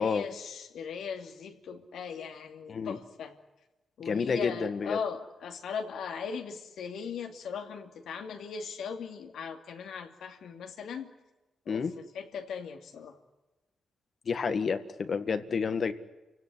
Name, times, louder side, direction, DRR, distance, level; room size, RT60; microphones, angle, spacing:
voice 1, 0.0-3.4 4.0-11.1 11.7-13.2, left 6 dB, 90° left, 4 dB, 2.6 m, -39 dB
voice 2, 4.1-5.0 11.7-11.9 14.3-15.9, left 5 dB, 55° left, 9 dB, 1.7 m, -29 dB
28.5 x 17.5 x 10.0 m, 1.1 s
cardioid pair, 95°, 0 cm